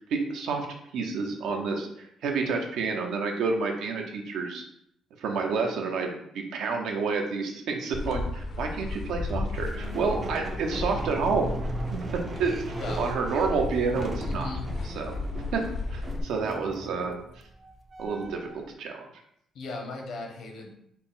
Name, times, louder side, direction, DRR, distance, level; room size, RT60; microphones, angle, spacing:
voice 1, 0.1-0.7 0.9-4.6 5.2-11.5 11.9-12.5 13.0-14.5 14.8-17.2 18.0-19.1, right 4 dB, 85° right, 2 dB, 0.6 m, -29 dB
sound 1, 7.9-16.2, left 3 dB, 50° left, 0.4 m, -34 dB
sound 2, 9.5-18.6, right 2 dB, 30° right, 0.4 m, -38 dB
voice 2, 14.2-14.7 19.5-20.7, left 3 dB, 70° left, 2 dB, 0.8 m, -37 dB
4.1 x 2.0 x 3.7 m, 0.72 s
cardioid pair, 130°, 0 cm